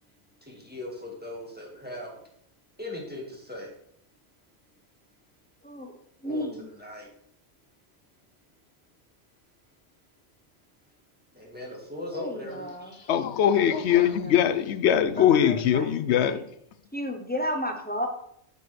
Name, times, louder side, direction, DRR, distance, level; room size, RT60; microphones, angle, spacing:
voice 1, 0.5-2.1 2.8-3.7 6.2-6.5 6.8-7.1 11.3-13.1, left 1 dB, 10° right, 1.8 m, -39 dB
voice 2, 5.6-5.9 6.2-6.7 12.1-13.0 13.7-14.3 15.1-16.4 16.9-18.1, equal, 10° left, 0.8 m, -33 dB
voice 3, 13.1-16.4, left 9 dB, 75° left, 0.9 m, -22 dB
8.2 x 6.7 x 3.3 m
omnidirectional pair, 1.2 m